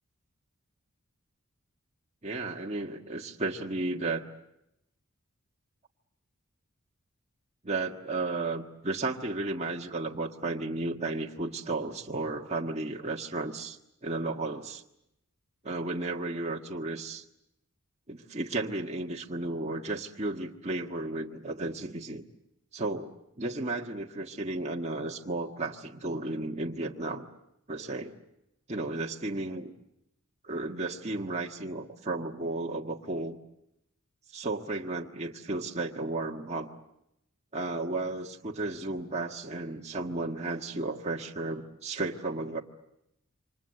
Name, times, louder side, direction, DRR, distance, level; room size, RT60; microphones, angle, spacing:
voice 1, 2.2-4.2 7.6-14.8 15.6-17.2 18.1-22.2 22.7-23.1 23.4-27.2 27.7-28.1 28.7-29.7 30.4-33.4 34.3-36.7 37.5-42.6, right 2 dB, 30° right, -1 dB, 1.6 m, -33 dB
29.0 x 25.5 x 7.7 m, 0.82 s
head